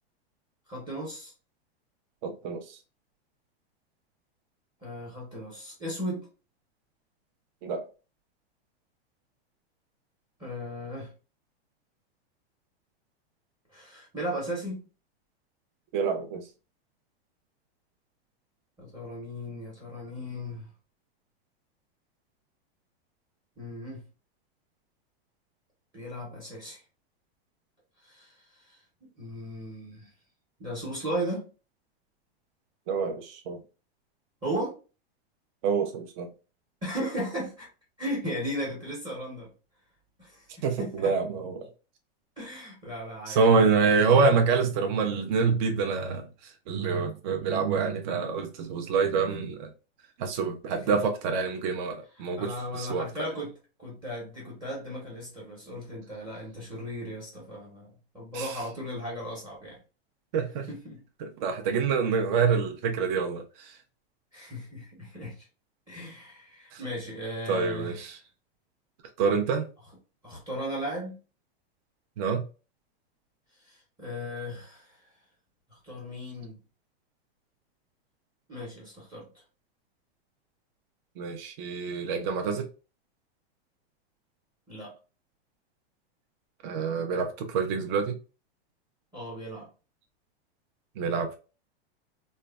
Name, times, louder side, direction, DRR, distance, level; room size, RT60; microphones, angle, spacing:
voice 1, 0.7-1.3 4.8-6.3 10.4-11.1 13.7-14.8 18.8-20.7 23.6-24.0 25.9-26.8 28.0-28.3 28.7-28.8 29.2-30.1 30.6-31.4 34.4-34.8 36.8-37.7 38.0-39.5 40.2-41.1 42.4-43.4 43.8-44.0 52.2-53.5 53.8-59.8 60.7-61.0 64.3-65.5 65.9-68.0 70.2-71.2 73.7-75.0 75.7-76.6 78.5-79.3 84.7-84.9 89.1-89.7, equal, 15° right, 0.8 m, -36 dB
voice 2, 2.2-2.8 7.6-7.8 15.9-16.5 32.9-33.6 35.6-36.3 40.6-41.7 43.3-49.7 50.2-53.1 58.3-58.6 60.3-60.7 61.2-63.8 66.7-66.8 67.5-68.2 69.2-69.7 72.2-72.4 81.2-82.7 86.6-88.2 91.0-91.4, right 5 dB, 50° right, 0.5 m, -26 dB
3.0 x 2.1 x 2.3 m
supercardioid pair, 145°, 31 cm